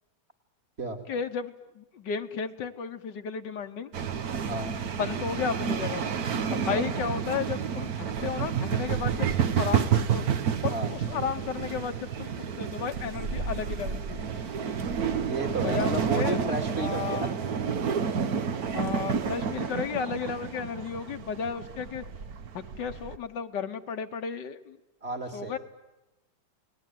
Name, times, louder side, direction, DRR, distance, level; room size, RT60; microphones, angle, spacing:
voice 1, 1.1-3.9 5.0-6.0 6.5-10.2 10.6-14.5 15.6-16.4 16.8-17.3 18.7-22.0 22.6-24.8 25.3-25.6, left 6 dB, 80° left, 8 dB, 1.8 m, -33 dB
sound 1, 3.9-23.2, right 7 dB, 60° right, 1.6 m, -30 dB
voice 2, 6.5-6.8 10.7-10.9 15.2-17.3 25.0-25.6, right 2 dB, 35° right, 3 dB, 2.9 m, -33 dB
29.0 x 20.0 x 9.3 m, 1.0 s
omnidirectional pair, 1.9 m